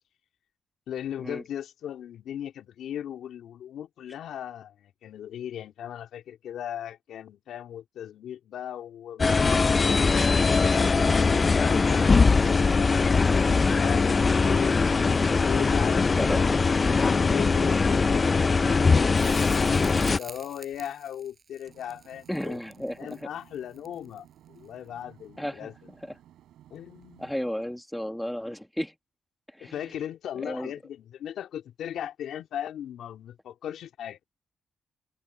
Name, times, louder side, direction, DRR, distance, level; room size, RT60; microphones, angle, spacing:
voice 1, 0.9-22.6 23.0-25.9 26.7-27.2 29.6-34.2, left 10 dB, 80° left, 3.2 m, -38 dB
sound 1, 9.2-20.2, left 4 dB, 40° left, 0.4 m, -21 dB
voice 2, 15.8-16.4 22.3-23.2 25.4-25.7 26.0-26.1 27.2-28.9 29.5-29.8 30.4-30.7, equal, 5° left, 1.2 m, -33 dB
Crackle, 19.2-24.3 27.0-27.1, right 5 dB, 45° right, 6.8 m, -48 dB
sound 2, 21.7-27.4, right 12 dB, 90° right, 4.3 m, -56 dB
open air
cardioid pair, 70°, 0 cm